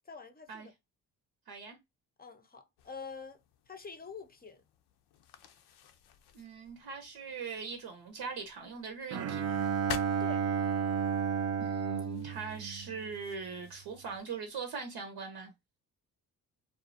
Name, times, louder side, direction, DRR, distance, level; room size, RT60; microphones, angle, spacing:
voice 1, 0.1-0.7 2.2-3.4 3.7-4.6 10.2-10.5, left 5 dB, 20° left, 0.7 m, -46 dB
sound 1, 2.8-14.7, left 9 dB, 65° left, 0.6 m, -51 dB
voice 2, 6.3-9.7 11.6-15.5, right 5 dB, 65° right, 0.8 m, -41 dB
Bowed string instrument, 9.1-13.5, right 7 dB, 35° right, 0.4 m, -32 dB
2.4 x 2.0 x 2.6 m
hypercardioid pair, 50°, 42 cm